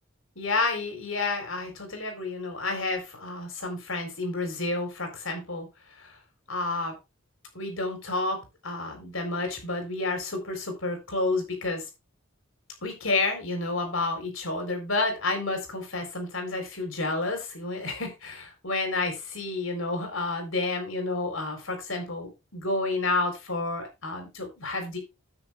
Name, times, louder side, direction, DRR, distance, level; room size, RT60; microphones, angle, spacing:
voice 1, 0.4-6.2 6.5-6.9 7.5-11.8 12.8-25.0, left 2 dB, 75° left, 5 dB, 4.0 m, -30 dB
9.8 x 8.1 x 3.5 m, 0.25 s
head